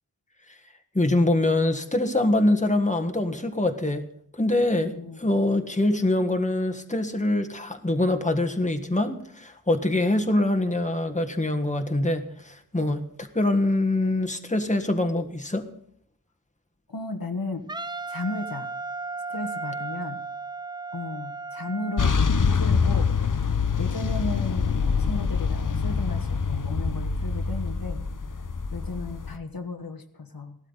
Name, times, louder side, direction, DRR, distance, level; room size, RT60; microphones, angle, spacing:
voice 1, 0.9-4.0 4.3-15.6, left 1 dB, 20° left, 6 dB, 1.6 m, -24 dB
voice 2, 4.8-5.3 16.9-17.7 18.1-18.7 19.3-20.2 20.9-23.5 23.8-28.1 28.7-30.6, left 2 dB, 85° left, 5 dB, 1.4 m, -34 dB
Wind instrument woodwind instrument, 17.7-22.1, right 3 dB, 15° right, 0.4 m, -35 dB
sound 1, 22.0-29.4, left 5 dB, 65° left, 0.8 m, -25 dB
17.0 x 12.5 x 4.1 m, 0.67 s
wide cardioid pair, 45°, 34 cm